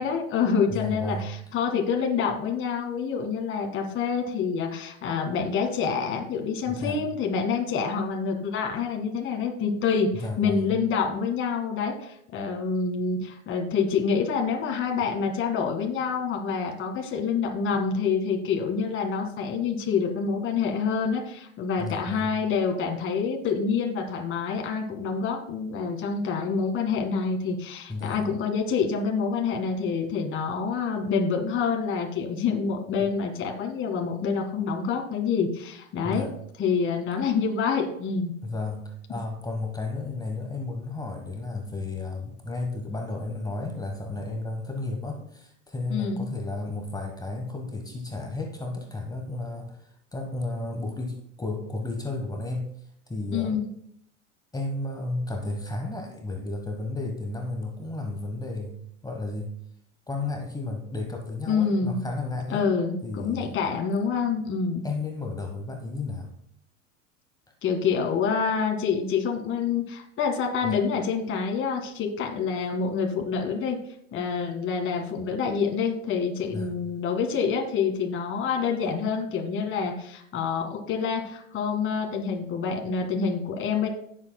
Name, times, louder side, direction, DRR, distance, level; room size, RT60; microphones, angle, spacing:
voice 1, 0.0-36.3 36.6-38.3 39.1-39.2 45.9-46.2 53.3-53.7 61.5-62.0 62.5-64.9 67.6-73.8 74.1-83.9, left 5 dB, 30° left, 2 dB, 1.9 m, -27 dB
voice 2, 0.7-1.3 6.7-7.0 10.2-10.7 21.8-22.3 27.9-28.2 36.0-36.3 38.4-52.7 53.1-53.6 54.5-58.7 59.0-59.5 60.1-62.6 63.0-63.5 64.8-66.3 70.6-70.8 76.5-76.7, left 2 dB, 10° left, 2 dB, 1.2 m, -33 dB
16.0 x 7.3 x 2.2 m, 0.71 s
hypercardioid pair, 105°, 40 cm